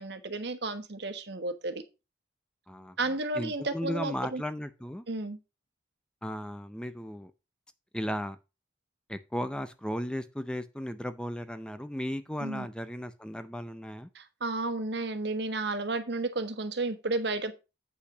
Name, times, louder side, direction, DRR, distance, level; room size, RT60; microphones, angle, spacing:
voice 1, 0.0-1.7 3.0-4.4 5.1-5.4 12.4-12.7 14.1-17.5, right 2 dB, 65° right, 1.3 m, -32 dB
voice 2, 2.7-5.1 6.2-7.3 7.9-8.4 9.1-14.1, equal, 5° left, 0.5 m, -36 dB
8.5 x 5.7 x 4.9 m
head